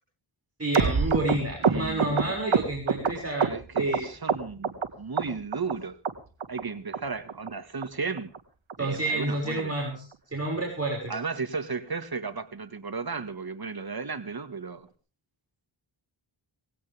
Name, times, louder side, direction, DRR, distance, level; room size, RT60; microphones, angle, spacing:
voice 1, 0.6-3.5 3.8-4.1 8.8-10.0 10.3-11.1, right 2 dB, 30° right, 6.2 m, -29 dB
sound 1, 0.7-4.0 4.3-4.9 5.2-5.7 6.0-6.1 6.4-6.6 6.9-7.0 7.3-7.5 7.8-7.9 8.2-8.4 8.7-8.8 9.0-9.2 9.6-9.7 9.9-10.1 10.5-10.6, right 5 dB, 70° right, 2.3 m, -26 dB
voice 2, 1.6-2.4 3.4-6.0 6.5-8.3 8.8-9.7 11.1-14.9, right 4 dB, 50° right, 2.0 m, -34 dB
19.5 x 16.5 x 3.6 m
cardioid pair, 45°, 48 cm